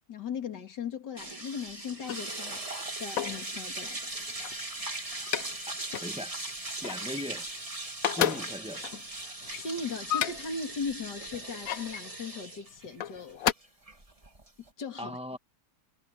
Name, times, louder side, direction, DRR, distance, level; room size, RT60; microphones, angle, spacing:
voice 1, 0.0-2.7 3.0-4.1 9.5-13.4 14.8-15.2, left 5 dB, 80° left, 3.0 m, -38 dB
sound 1, 1.2-14.7, right 2 dB, 20° right, 2.3 m, -39 dB
sound 2, 1.9-3.5 4.1-5.6 5.9-6.2 6.5-7.6 7.9-10.6 11.3-12.0 12.9-13.5, left 10 dB, 65° left, 1.1 m, -33 dB
voice 2, 6.0-6.4 6.8-7.5 8.0-8.9 15.0-15.4, equal, 5° right, 1.5 m, -38 dB
omnidirectional pair, 1.8 m